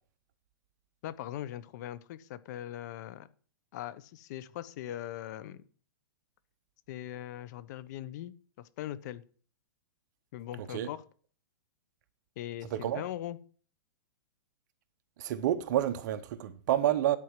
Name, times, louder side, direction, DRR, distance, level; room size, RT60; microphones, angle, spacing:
voice 1, 1.0-3.3 3.7-5.6 6.9-9.2 10.3-11.0 12.4-13.4, left 12 dB, 50° left, 0.9 m, -40 dB
voice 2, 10.6-10.9 12.7-13.0 15.2-17.2, right 12 dB, 50° right, 1.1 m, -29 dB
11.0 x 4.7 x 7.5 m
hypercardioid pair, 145°, 12 cm